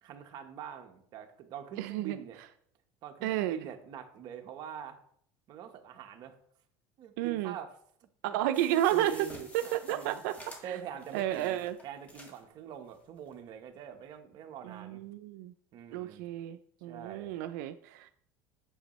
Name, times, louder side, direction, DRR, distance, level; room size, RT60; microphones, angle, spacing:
voice 1, 0.0-2.4 3.0-5.0 5.5-6.4 7.0-7.8 8.3-10.2 10.6-15.0 15.7-16.2 16.9-17.3, right 9 dB, 50° right, 5 dB, 1.0 m, -44 dB
voice 2, 1.8-2.2 3.2-3.6 7.2-7.5 8.2-9.1 9.5-10.4 10.7-10.8 11.1-11.7 14.6-15.5 15.9-18.1, right 13 dB, 90° right, 9 dB, 0.4 m, -31 dB
sound 1, 8.5-12.4 12.9-13.0 13.3-13.4, left 1 dB, 15° left, 1.6 m, -51 dB
8.0 x 6.7 x 3.1 m, 0.63 s
cardioid pair, 135°, 9 cm